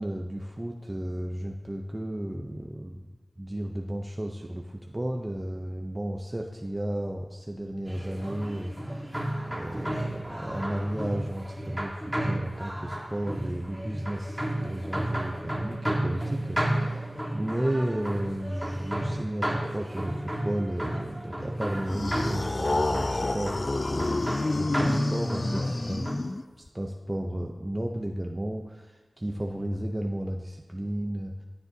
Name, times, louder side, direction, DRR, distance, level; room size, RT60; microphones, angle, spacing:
voice 1, 0.0-3.0 3.4-9.1 9.4-17.1 17.3-26.1 26.6-31.3, right 1 dB, 20° right, 1 dB, 0.6 m, -33 dB
sound 1, 7.9-26.1, right 1 dB, 5° right, 1.6 m, -33 dB
sound 2, 21.9-26.7, left 2 dB, 40° left, 0.3 m, -28 dB
13.5 x 9.6 x 2.8 m, 1.3 s
wide cardioid pair, 60°, 0 cm